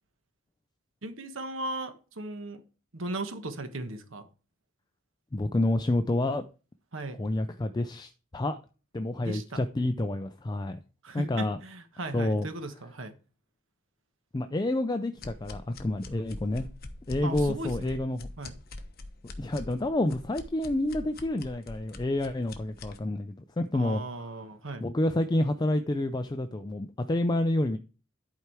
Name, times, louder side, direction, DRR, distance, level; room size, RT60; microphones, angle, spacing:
voice 1, 1.0-2.6 2.9-4.3 6.9-7.2 9.2-9.6 11.0-13.1 17.2-18.0 18.4-18.5 23.7-24.9, right 2 dB, 75° right, 1.2 m, -37 dB
voice 2, 5.3-6.4 7.2-8.6 8.9-10.8 11.1-11.6 12.1-12.5 14.3-16.7 17.1-18.3 19.4-24.0 24.8-27.8, left 1 dB, 20° left, 0.4 m, -29 dB
sound 1, 15.2-23.0, left 2 dB, 50° left, 1.1 m, -43 dB
11.5 x 4.7 x 4.5 m
head